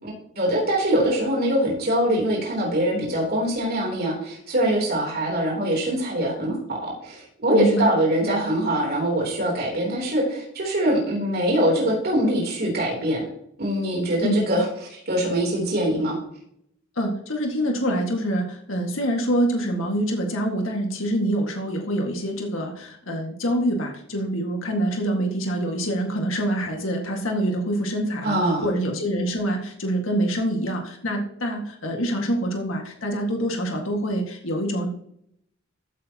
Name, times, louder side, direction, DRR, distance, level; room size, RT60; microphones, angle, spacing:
voice 1, 0.0-13.2 13.6-14.6 14.9-16.2 28.2-28.7, right 1 dB, 55° right, -2 dB, 3.4 m, -23 dB
voice 2, 7.5-7.9 14.2-14.4 17.0-34.9, right 1 dB, 90° left, 2 dB, 1.9 m, -25 dB
14.5 x 8.8 x 2.9 m, 0.70 s
head